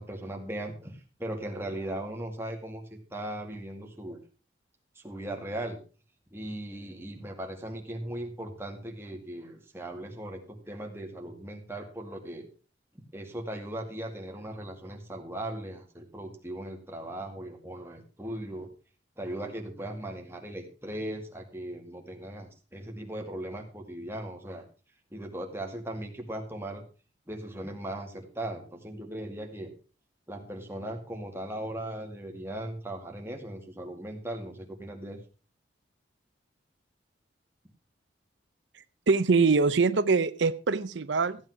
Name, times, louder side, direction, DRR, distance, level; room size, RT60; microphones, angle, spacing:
voice 1, 0.0-4.2 5.0-5.8 6.3-12.5 13.1-18.7 19.2-24.6 25.1-26.8 27.3-29.7 30.3-35.2, right 1 dB, 15° right, 2 dB, 2.1 m, -38 dB
voice 2, 39.1-41.4, right 4 dB, 75° right, 13 dB, 0.6 m, -23 dB
14.5 x 9.0 x 4.7 m, 0.36 s
head